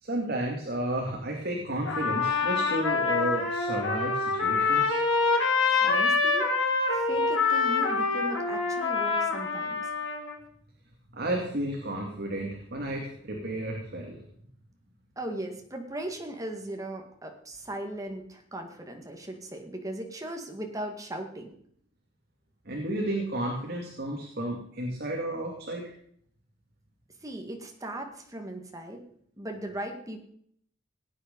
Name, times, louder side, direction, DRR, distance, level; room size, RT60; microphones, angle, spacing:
voice 1, 0.0-4.9 11.1-14.2 22.7-25.9, right 1 dB, 50° right, 0 dB, 2.5 m, -32 dB
Trumpet, 1.8-10.3, left 4 dB, 85° left, 3.2 m, -26 dB
voice 2, 5.8-6.5 6.9-9.8 15.2-21.5 27.2-29.0 29.4-30.2, right 1 dB, 15° right, 3 dB, 1.9 m, -38 dB
18.0 x 9.0 x 5.4 m, 0.65 s
head